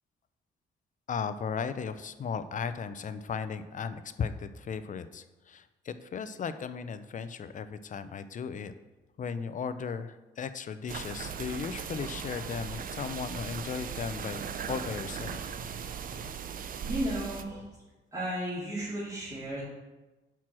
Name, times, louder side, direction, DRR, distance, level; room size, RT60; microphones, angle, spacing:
voice 1, 1.1-8.7 9.2-15.5, left 6 dB, 40° left, 12 dB, 0.5 m, -36 dB
sound 1, 10.9-17.4, right 7 dB, 45° right, 0.5 m, -38 dB
voice 2, 16.8-17.7 18.1-19.6, right 1 dB, 15° right, -10 dB, 2.6 m, -34 dB
6.0 x 4.5 x 6.1 m, 1.1 s
cardioid pair, 90°, 20 cm